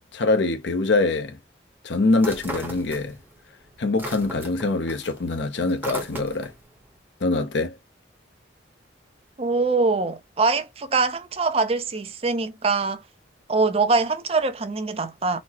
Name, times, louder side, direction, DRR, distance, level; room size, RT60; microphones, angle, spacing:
voice 1, 0.1-1.4 1.8-3.2 3.8-6.5 7.2-7.7, left 3 dB, 75° left, 0.6 m, -23 dB
sound 1, 2.2-3.4 3.7-6.6, right 1 dB, 10° right, 0.8 m, -36 dB
voice 2, 9.4-13.0 13.5-15.4, right 3 dB, 30° right, 0.5 m, -23 dB
4.1 x 2.0 x 2.8 m
head